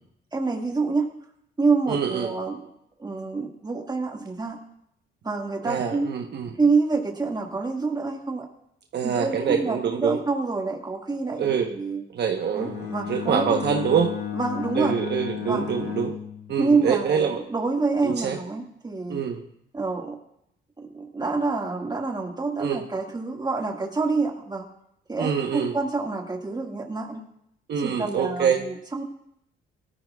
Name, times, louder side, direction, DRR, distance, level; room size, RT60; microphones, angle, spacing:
voice 1, 0.3-1.1 1.6-2.6 3.0-4.6 5.2-6.1 6.6-8.5 9.0-12.0 12.5-13.6 14.3-15.0 15.4-15.6 16.6-19.2 19.7-20.2 20.8-24.6 25.1-27.2 27.8-29.0, right 4 dB, 20° right, 1 dB, 1.9 m, -27 dB
voice 2, 1.9-2.3 5.6-6.5 8.9-10.2 11.3-11.7 12.1-14.1 14.7-16.1 16.5-17.4 18.0-18.4 19.1-19.4 22.6-22.8 25.2-25.7 27.7-28.6, right 7 dB, 60° right, 3 dB, 1.1 m, -25 dB
Bowed string instrument, 12.6-16.8, left 9 dB, 85° left, 1.4 m, -33 dB
18.0 x 13.5 x 2.4 m, 0.77 s
cardioid pair, 90°, 20 cm